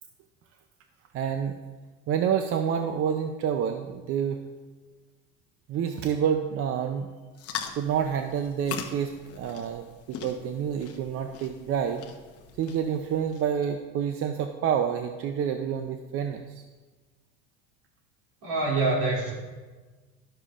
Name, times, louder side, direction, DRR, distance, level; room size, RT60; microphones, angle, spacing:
voice 1, 1.1-1.6 2.1-4.4 5.7-7.1 7.8-12.0 12.6-16.6, right 8 dB, 45° right, 6 dB, 0.6 m, -28 dB
sound 1, 7.3-13.7, left 7 dB, 50° left, 0.9 m, -41 dB
voice 2, 18.4-19.3, right 3 dB, 70° right, -3 dB, 2.7 m, -25 dB
11.5 x 6.6 x 2.5 m, 1.3 s
supercardioid pair, 110°, 31 cm